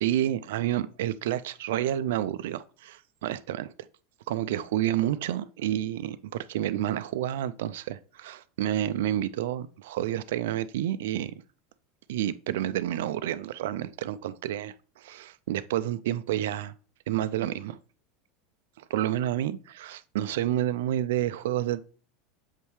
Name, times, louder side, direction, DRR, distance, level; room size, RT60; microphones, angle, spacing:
voice 1, 0.0-3.7 4.3-11.3 12.1-16.7 17.1-17.8 18.9-21.8, right 12 dB, 70° right, 0.4 m, -29 dB
7.3 x 5.4 x 3.2 m
hypercardioid pair, 85°, 0 cm